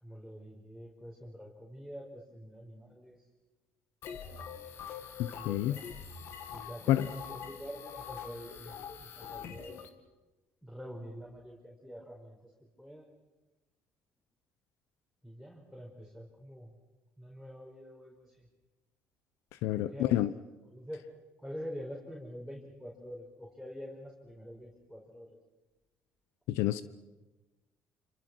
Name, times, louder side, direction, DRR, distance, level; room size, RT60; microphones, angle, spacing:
voice 1, 0.0-3.2 5.2-5.8 6.5-9.8 10.6-12.5 12.8-13.1 15.2-16.7 17.2-18.5 19.7-20.3 20.7-21.1 21.4-25.4, equal, 5° left, 5.3 m, -46 dB
sound 1, 4.0-9.9, left 7 dB, 65° left, 2.4 m, -44 dB
voice 2, 5.2-5.8 6.9-7.1 19.6-20.3 26.5-26.8, left 14 dB, 85° left, 0.8 m, -28 dB
28.0 x 26.0 x 6.3 m
cardioid pair, 105°, 4 cm